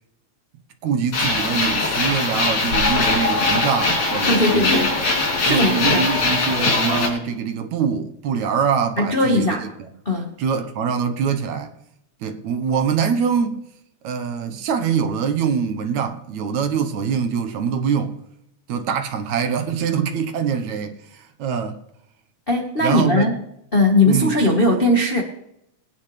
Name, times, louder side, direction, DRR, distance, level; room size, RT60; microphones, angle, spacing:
voice 1, 0.8-4.8 5.5-9.7 10.4-11.7 12.2-13.7 14.0-18.2 18.7-21.8 22.8-23.3 24.1-24.3, right 7 dB, 70° right, 2.3 m, -24 dB
sound 1, 1.1-7.1, left 3 dB, 65° left, 4.1 m, -21 dB
voice 2, 4.3-5.0 5.4-6.1 9.0-9.7 10.0-10.3 22.5-23.4 23.7-25.2, left 2 dB, 40° left, 0.7 m, -19 dB
21.5 x 9.9 x 3.3 m
omnidirectional pair, 3.5 m